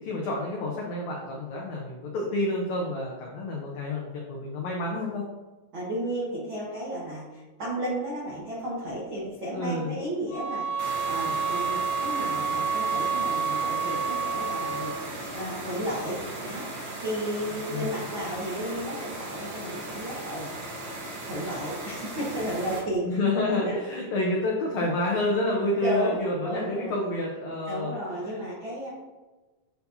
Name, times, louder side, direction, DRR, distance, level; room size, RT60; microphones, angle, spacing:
voice 1, 0.0-5.2 9.5-10.0 17.7-17.9 23.0-27.9 28.2-28.4, left 2 dB, 85° left, -2 dB, 1.6 m, -29 dB
voice 2, 5.7-20.5 21.3-23.1 23.6-23.8 25.7-26.9 27.7-28.9, right 1 dB, 80° right, -6 dB, 1.1 m, -33 dB
sound 1, 10.3-15.1, right 5 dB, 60° left, 1.3 m, -29 dB
sound 2, 10.8-22.8, right 1 dB, 65° right, 1.3 m, -37 dB
9.2 x 4.6 x 2.7 m, 1.2 s
omnidirectional pair, 4.4 m